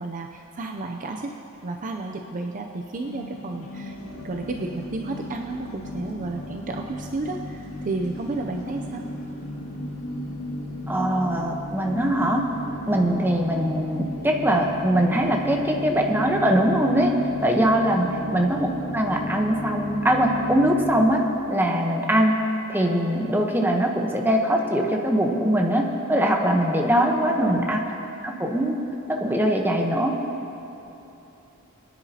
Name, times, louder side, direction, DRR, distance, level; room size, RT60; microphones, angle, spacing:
voice 1, 0.0-1.3 1.6-4.0 4.2-9.0 18.2-18.4 27.2-27.7, right 2 dB, 35° right, 2 dB, 0.5 m, -32 dB
sound 1, 3.0-21.1, equal, 85° left, 1.9 m, -35 dB
voice 2, 10.9-12.4 12.9-17.1 17.4-21.2 21.5-22.4 22.7-27.8 28.2-28.8 29.1-30.1, right 1 dB, 10° right, 1 dB, 0.9 m, -22 dB
21.0 x 10.0 x 2.8 m, 2.9 s
head